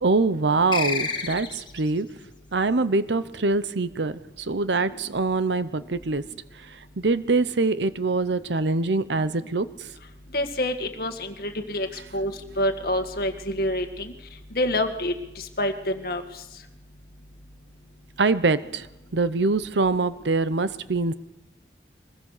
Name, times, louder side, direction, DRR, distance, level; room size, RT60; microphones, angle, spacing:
voice 1, 0.0-2.1 2.5-6.2 7.0-9.9 18.2-18.9 19.1-21.1, right 3 dB, 85° right, 14 dB, 0.8 m, -24 dB
sound 1, 0.7-1.9, left 5 dB, 25° left, 1.6 m, -29 dB
voice 2, 10.3-11.9 12.1-14.1 14.6-15.1 15.6-16.2, left 1 dB, 55° left, 6 dB, 2.0 m, -27 dB
24.0 x 20.0 x 6.7 m, 0.96 s
head